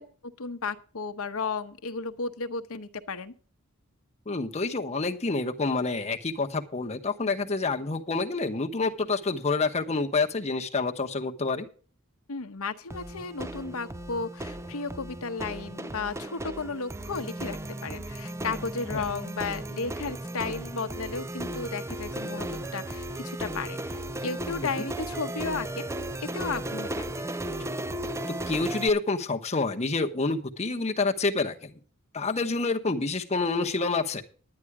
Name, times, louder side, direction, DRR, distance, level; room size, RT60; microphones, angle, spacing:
voice 1, 0.2-3.3 12.3-25.9 26.2-27.0, left 4 dB, 70° left, 9 dB, 0.9 m, -34 dB
voice 2, 4.3-11.7 18.9-19.1 24.8-24.9 28.3-31.7 32.1-34.2, left 3 dB, 30° left, 4 dB, 1.0 m, -28 dB
sound 1, 12.9-28.9, right 1 dB, 15° right, 0.4 m, -35 dB
10.5 x 9.9 x 4.8 m, 0.41 s
head